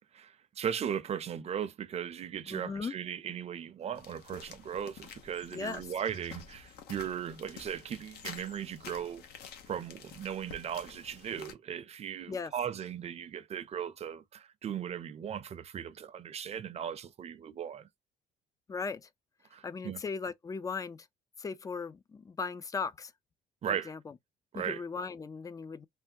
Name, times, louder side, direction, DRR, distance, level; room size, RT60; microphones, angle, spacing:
voice 1, 0.1-9.2 9.7-17.9 19.5-20.0 23.6-23.9 24.5-24.8, right 8 dB, 40° right, 0.5 m, -37 dB
voice 2, 2.5-3.0 5.5-5.8 12.3-12.5 18.7-19.1 19.6-21.1 21.4-23.1 23.7-24.1 24.5-25.9, left 5 dB, 20° left, 0.3 m, -38 dB
sound 1, 4.0-11.5, left 7 dB, 70° left, 0.8 m, -50 dB
3.3 x 2.2 x 2.7 m
cardioid pair, 110°, 17 cm